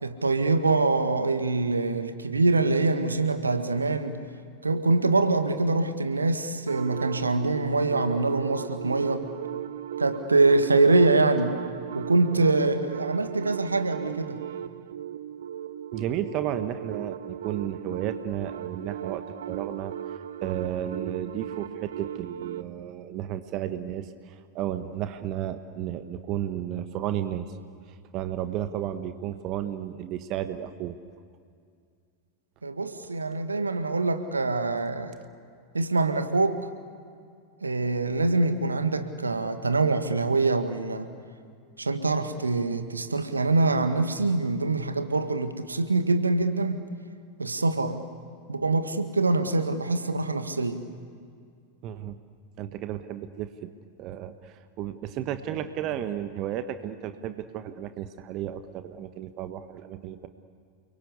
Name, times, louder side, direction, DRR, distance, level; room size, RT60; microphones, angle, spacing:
voice 1, 0.0-4.2 4.6-9.3 10.0-11.5 11.9-14.4 32.6-35.2 35.7-36.7 37.6-41.1 41.8-46.8 47.4-48.0 48.5-50.8, right 3 dB, 80° right, 8 dB, 1.7 m, -24 dB
sound 1, 6.7-22.7, right 10 dB, 60° right, 0.7 m, -37 dB
voice 2, 15.9-19.9 20.4-27.6 27.9-31.0 51.8-52.2 52.6-53.7 54.0-60.3, right 11 dB, 40° right, 10 dB, 1.3 m, -33 dB
30.0 x 23.0 x 8.3 m, 2.2 s
figure-of-eight pair, 90°, 0 cm